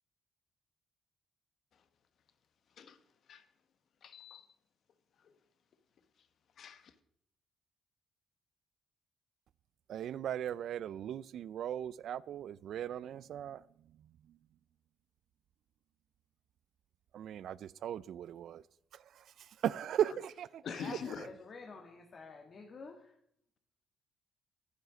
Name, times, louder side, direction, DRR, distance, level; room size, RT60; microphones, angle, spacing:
voice 1, 4.0-4.5 6.6-6.9 20.6-21.2, left 6 dB, 60° left, 1.1 m, -44 dB
voice 2, 9.9-13.6 14.3-14.4 17.1-18.6 18.9-21.0, right 10 dB, 70° right, 0.4 m, -38 dB
voice 3, 20.6-23.2, left 4 dB, 45° left, 1.7 m, -49 dB
9.7 x 9.3 x 6.2 m
cardioid pair, 90°, 0 cm